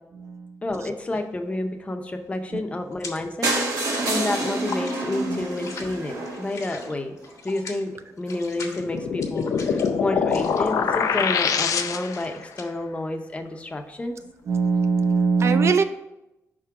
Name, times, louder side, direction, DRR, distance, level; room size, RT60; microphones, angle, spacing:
voice 1, 0.6-7.1 7.4-14.2, left 2 dB, 20° left, 5 dB, 0.6 m, -30 dB
sound 1, 1.0-1.4 1.7-3.4 3.7-15.2, left 4 dB, 70° left, 1.1 m, -42 dB
sound 2, 3.4-7.3 8.0-8.1 8.3-8.4 8.7-8.8 9.0-9.1, right 2 dB, 85° right, 1.4 m, -28 dB
sound 3, 8.7-12.4, left 6 dB, 90° left, 0.5 m, -24 dB
voice 2, 14.5-15.8, right 5 dB, 50° right, 9 dB, 0.5 m, -21 dB
5.5 x 3.7 x 5.6 m, 0.91 s
wide cardioid pair, 160°, 6 cm